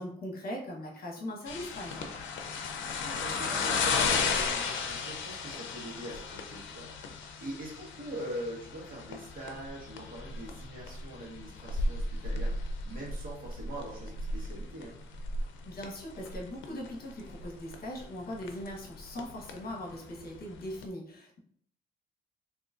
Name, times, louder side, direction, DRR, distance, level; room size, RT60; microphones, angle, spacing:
voice 1, 0.0-2.1 15.6-21.4, left 1 dB, 50° left, -1 dB, 1.1 m, -40 dB
sound 1, 1.5-20.9, left 4 dB, 70° left, 0.6 m, -35 dB
voice 2, 2.8-15.0, right 1 dB, 45° right, -3 dB, 1.4 m, -43 dB
3.9 x 2.8 x 2.5 m, 0.64 s
cardioid pair, 90°, 20 cm